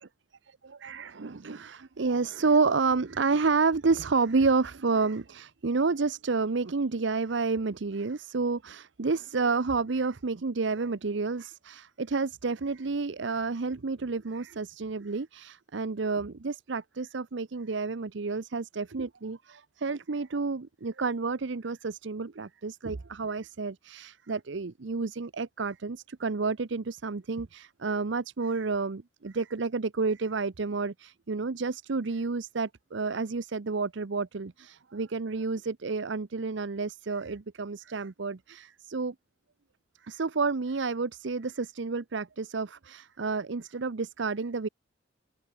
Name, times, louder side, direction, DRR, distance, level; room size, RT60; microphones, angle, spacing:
voice 1, 0.6-39.1 40.0-44.7, right 4 dB, 70° right, 0.7 m, -30 dB
open air
head